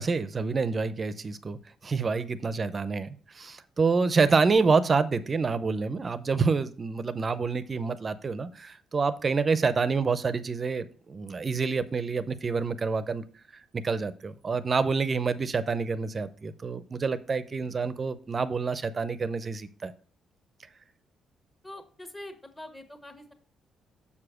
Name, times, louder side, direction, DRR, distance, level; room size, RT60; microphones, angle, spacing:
voice 1, 0.0-3.1 3.3-13.2 13.7-19.9, right 4 dB, 35° right, 14 dB, 0.6 m, -27 dB
voice 2, 21.6-23.3, left 1 dB, 15° left, 7 dB, 1.4 m, -44 dB
7.0 x 4.9 x 4.9 m, 0.43 s
cardioid pair, 90°, 0 cm